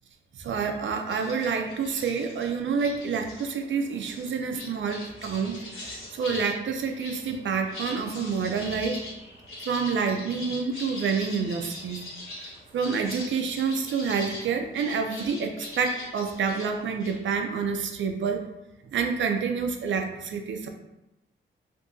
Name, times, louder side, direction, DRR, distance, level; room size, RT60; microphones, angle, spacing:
voice 1, 0.4-9.0 9.7-12.0 12.4-18.5 18.9-20.7, right 5 dB, 65° right, 5 dB, 0.5 m, -28 dB
sound 1, 1.1-17.2, left 1 dB, 70° left, 1.3 m, -42 dB
3.5 x 2.7 x 2.6 m, 0.92 s
wide cardioid pair, 145°, 21 cm